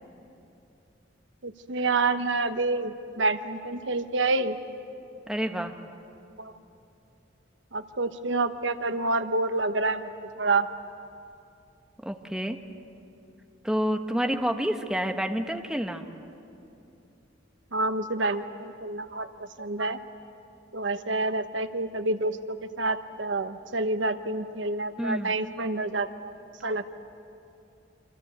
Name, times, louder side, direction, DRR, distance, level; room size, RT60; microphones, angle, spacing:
voice 1, 1.4-4.6 6.4-6.5 7.7-10.1 10.4-10.7 17.7-20.0 20.7-26.3 26.6-27.0, right 3 dB, 90° right, 9 dB, 1.1 m, -28 dB
voice 2, 5.3-5.7 12.0-12.6 13.6-16.0 25.0-25.3, equal, 5° right, 5 dB, 1.2 m, -28 dB
28.0 x 26.0 x 8.1 m, 2.7 s
head